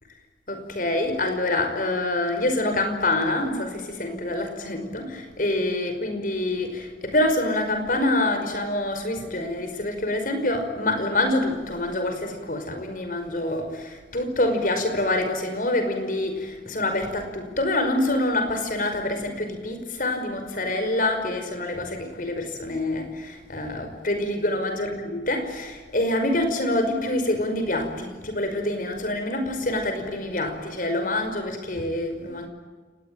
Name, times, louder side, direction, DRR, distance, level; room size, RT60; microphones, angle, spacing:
voice 1, 0.5-32.5, left 1 dB, 50° left, 6 dB, 5.5 m, -26 dB
30.0 x 19.5 x 9.0 m, 1.4 s
head